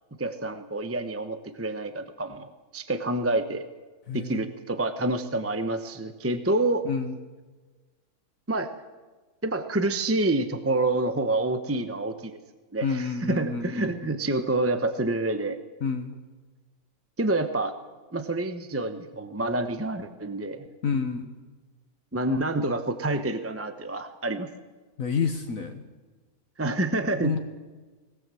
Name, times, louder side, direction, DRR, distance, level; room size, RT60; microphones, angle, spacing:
voice 1, 0.2-3.7 4.1-6.8 8.5-8.7 9.4-12.4 12.7-15.6 17.2-17.7 18.1-20.7 22.1-24.5 26.6-27.4, right 2 dB, 10° right, 8 dB, 0.8 m, -28 dB
voice 2, 4.1-4.4 6.8-7.1 12.8-13.9 15.8-16.2 20.8-21.2 25.0-25.8 27.2-27.4, left 5 dB, 65° left, 6 dB, 1.6 m, -28 dB
20.0 x 17.0 x 7.7 m, 1.3 s
omnidirectional pair, 1.6 m